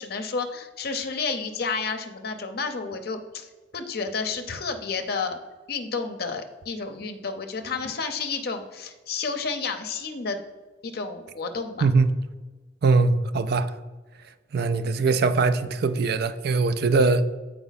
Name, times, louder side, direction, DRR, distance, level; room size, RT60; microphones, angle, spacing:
voice 1, 0.0-5.4 5.7-10.4 10.8-11.9, left 4 dB, 60° left, 0.6 m, -31 dB
voice 2, 12.8-13.7 14.5-17.2, right 4 dB, 60° right, 0.4 m, -21 dB
8.1 x 4.8 x 4.0 m
head